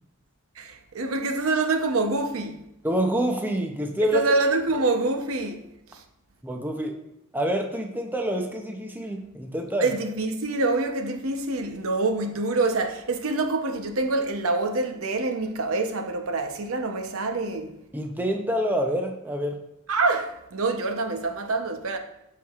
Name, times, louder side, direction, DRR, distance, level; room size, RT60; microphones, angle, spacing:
voice 1, 0.6-2.6 4.1-5.6 5.9-6.0 9.8-17.8 19.9-22.0, right 3 dB, 75° right, 0.8 m, -26 dB
voice 2, 2.8-4.2 6.4-7.0 7.3-9.9 17.9-19.6, right 1 dB, 10° right, 0.6 m, -27 dB
12.5 x 4.6 x 2.4 m
head